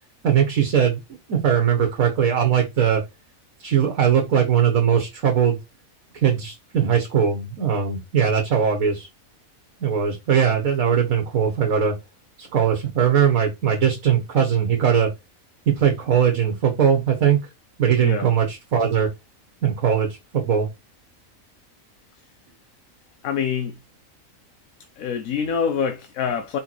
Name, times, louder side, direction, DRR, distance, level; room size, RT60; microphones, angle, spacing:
voice 1, 0.2-1.0 1.3-3.0 3.6-5.6 6.1-9.1 9.8-11.9 12.4-15.1 15.8-17.4 17.8-19.1 19.6-20.7, right 8 dB, 75° right, 1.7 m, -20 dB
voice 2, 23.2-23.8 25.0-26.6, left 7 dB, 80° left, 1.2 m, -25 dB
5.0 x 4.6 x 4.4 m
omnidirectional pair, 1.4 m